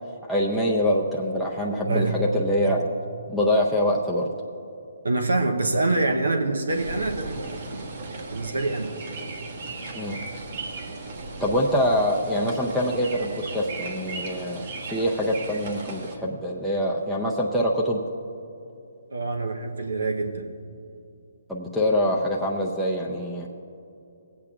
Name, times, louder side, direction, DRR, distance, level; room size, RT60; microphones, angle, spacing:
voice 1, 0.3-2.9 3.3-4.3 10.0-10.2 11.4-14.6 14.9-18.0 21.5-23.5, equal, ahead, -6 dB, 0.6 m, -24 dB
voice 2, 1.8-2.2 5.0-8.9 19.1-20.5, right 2 dB, 85° right, 4 dB, 0.8 m, -26 dB
sound 1, 6.7-16.2, right 3 dB, 50° right, 1.3 m, -36 dB
21.5 x 8.4 x 2.4 m, 2.7 s
hypercardioid pair, 145°, 0 cm